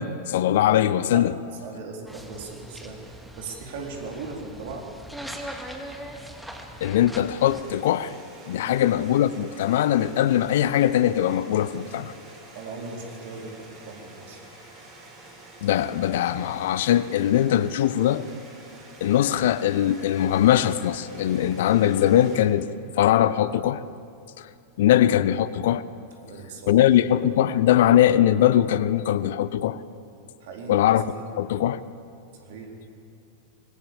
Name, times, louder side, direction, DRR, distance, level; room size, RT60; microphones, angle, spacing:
voice 1, 0.0-1.3 6.8-8.1 8.5-12.1 15.6-18.2 19.0-22.7 23.0-23.8 24.4-24.5 24.8-25.8 26.7-29.8 30.7-31.8, left 11 dB, 55° left, 0.7 m, -21 dB
voice 2, 1.6-4.9 8.6-8.9 12.5-14.4 24.8-24.9 26.2-26.8 30.4-30.8 31.1-31.3 32.4-32.8, right 4 dB, 55° right, 4.1 m, -38 dB
sound 1, 2.1-7.6, equal, ahead, 2.2 m, -40 dB
sound 2, 7.4-22.4, right 2 dB, 30° right, 6.7 m, -48 dB
25.5 x 20.0 x 7.3 m
figure-of-eight pair, 90°, 0 cm